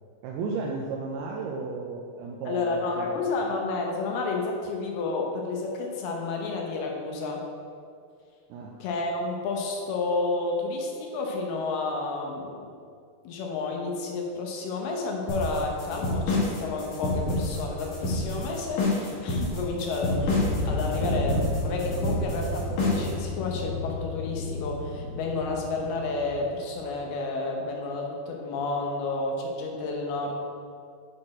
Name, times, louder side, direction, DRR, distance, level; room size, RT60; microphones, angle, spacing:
voice 1, 0.2-3.1 8.5-8.7, right 4 dB, 85° right, -1 dB, 2.3 m, -33 dB
voice 2, 2.5-7.4 8.8-12.7 13.2-30.3, left 3 dB, 75° left, 0 dB, 2.7 m, -31 dB
sound 1, 15.3-23.2, left 2 dB, 55° left, 2.9 m, -27 dB
sound 2, 20.0-26.7, left 1 dB, 40° right, 1.5 m, -32 dB
8.7 x 4.3 x 4.8 m, 2.3 s
omnidirectional pair, 5.0 m